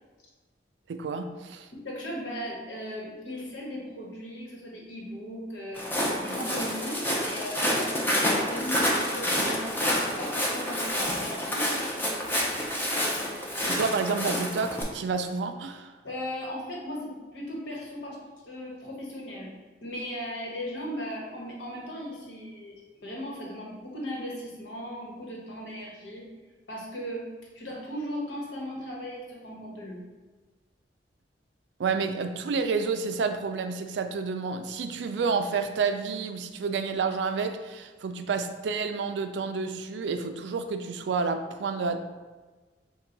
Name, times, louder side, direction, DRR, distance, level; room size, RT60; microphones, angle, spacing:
voice 1, 0.9-1.7 13.7-15.9 31.8-42.0, right 5 dB, 75° right, 7 dB, 0.4 m, -29 dB
voice 2, 1.7-11.9 16.0-19.5 19.8-26.2 26.7-27.3 27.5-30.0, equal, 80° left, -3 dB, 1.1 m, -37 dB
Walk footsteps, 5.7-14.8, left 1 dB, 10° left, 0.6 m, -28 dB
4.4 x 2.3 x 3.8 m, 1.3 s
head